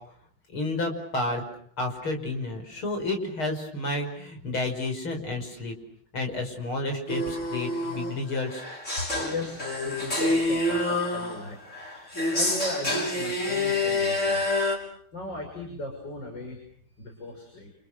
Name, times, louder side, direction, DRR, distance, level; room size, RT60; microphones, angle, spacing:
voice 1, 0.5-1.4 1.8-5.7 6.1-8.6, left 2 dB, 80° left, 4 dB, 6.4 m, -30 dB
sound 1, 7.1-14.8, left 2 dB, 35° left, 7.1 m, -27 dB
voice 2, 9.1-11.6 12.3-14.5 15.1-16.6 17.0-17.7, left 2 dB, 55° left, 3 dB, 6.9 m, -37 dB
30.0 x 28.5 x 6.4 m, 0.63 s
omnidirectional pair, 2.3 m